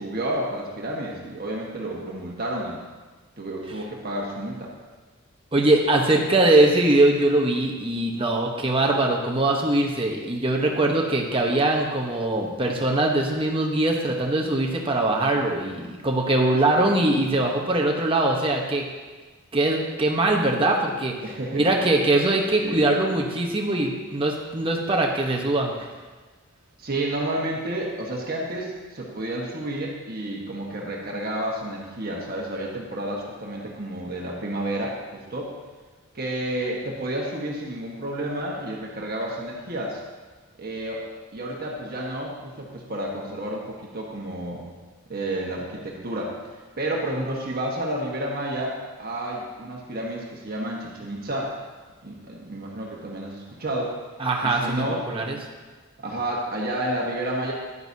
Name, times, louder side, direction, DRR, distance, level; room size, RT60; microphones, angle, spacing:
voice 1, 0.0-2.8 3.4-4.7 21.2-21.6 22.6-22.8 26.8-35.5 36.1-40.0 40.6-41.0 41.3-44.7 45.1-46.3 46.8-51.6 52.0-53.9 54.4-55.1 56.0-57.5, right 1 dB, 45° right, -2 dB, 1.4 m, -30 dB
voice 2, 5.5-18.9 19.5-21.2 21.5-25.7 54.2-55.4, right 2 dB, 25° right, 0 dB, 1.0 m, -22 dB
11.0 x 9.7 x 2.8 m, 1.3 s
head